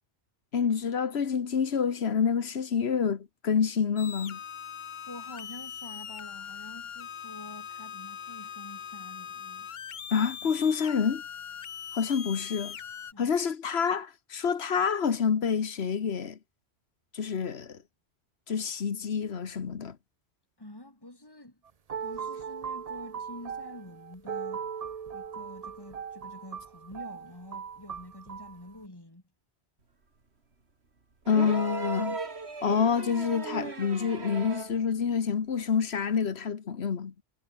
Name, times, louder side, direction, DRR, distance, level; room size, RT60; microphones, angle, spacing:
voice 1, 0.5-4.4 10.1-11.2 11.9-12.8 13.2-16.4 17.1-17.8 18.5-20.0 31.3-32.2 32.6-37.1, left 6 dB, 65° left, 1.5 m, -27 dB
sound 1, 4.0-13.1, left 8 dB, 50° left, 0.8 m, -41 dB
voice 2, 5.1-9.7 13.1-13.4 20.6-21.6 22.0-24.7 25.1-29.2, left 1 dB, 20° left, 3.7 m, -47 dB
sound 2, 21.7-28.6, right 7 dB, 40° right, 0.6 m, -39 dB
sound 3, 31.3-34.8 36.1-36.2, right 3 dB, 65° right, 2.7 m, -36 dB
omnidirectional pair, 1.2 m